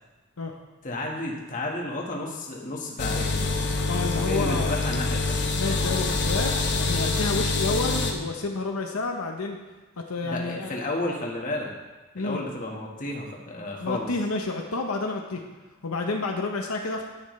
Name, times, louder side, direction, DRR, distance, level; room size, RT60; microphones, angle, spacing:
voice 1, 0.8-3.4 4.1-5.5 10.2-11.7 12.2-14.1, left 2 dB, 40° left, -1 dB, 1.5 m, -32 dB
sound 1, 3.0-8.1, left 3 dB, 55° left, 1.0 m, -26 dB
voice 2, 3.9-4.8 5.6-9.6 10.0-10.8 12.1-12.4 13.8-15.4 15.8-17.1, left 3 dB, 85° left, 2 dB, 0.9 m, -29 dB
10.5 x 8.8 x 3.2 m, 1.2 s
head